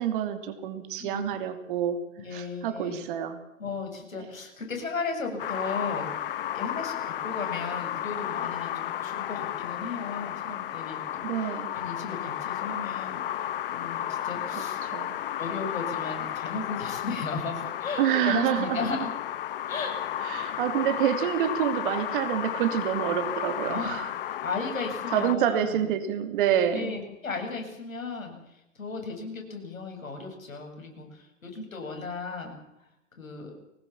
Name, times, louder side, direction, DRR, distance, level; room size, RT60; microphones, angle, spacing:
voice 1, 0.0-2.0 2.3-3.4 11.2-11.7 14.6-15.2 18.0-18.8 20.2-24.0 25.1-27.0, right 10 dB, 40° right, 8 dB, 3.0 m, -27 dB
voice 2, 1.0-1.4 2.2-3.0 3.6-11.3 11.7-14.8 15.4-19.1 19.7-20.1 23.6-24.0 24.3-25.9 26.7-28.4 28.8-32.6 33.2-33.6, left 4 dB, 80° left, 3 dB, 7.9 m, -35 dB
sound 1, 5.4-25.3, left 11 dB, 45° left, 0.8 m, -33 dB
23.5 x 19.5 x 7.3 m, 0.87 s
hypercardioid pair, 135°, 40 cm